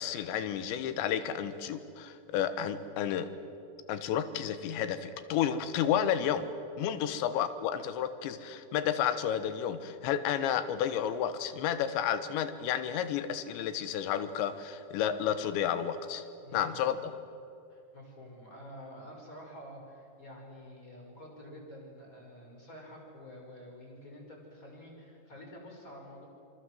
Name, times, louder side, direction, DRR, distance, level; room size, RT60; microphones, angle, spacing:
voice 1, 0.0-3.3 3.9-6.5 6.8-16.2 16.5-17.1, left 9 dB, 75° left, 11 dB, 3.4 m, -31 dB
voice 2, 16.4-16.9 17.7-26.3, equal, 15° left, 0 dB, 5.8 m, -49 dB
27.0 x 26.5 x 7.7 m, 2.5 s
omnidirectional pair, 5.4 m